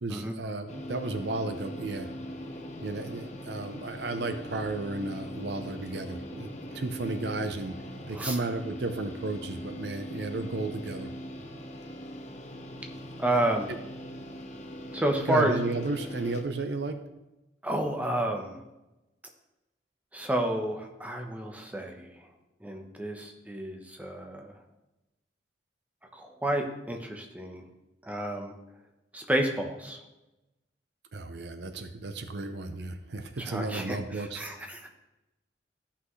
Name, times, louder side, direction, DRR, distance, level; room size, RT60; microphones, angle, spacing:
voice 1, 0.0-2.1 2.8-7.8 8.1-11.1 15.3-17.0 31.1-34.4, right 2 dB, 70° right, 8 dB, 0.7 m, -33 dB
sound 1, 0.7-16.4, equal, 40° left, 1.0 m, -41 dB
voice 2, 13.2-13.7 14.9-15.5 17.6-18.6 20.1-22.1 22.6-24.5 26.1-27.6 28.0-28.5 29.1-30.0 33.4-34.9, right 1 dB, 10° right, 2 dB, 1.0 m, -30 dB
14.0 x 5.8 x 3.2 m, 0.97 s
head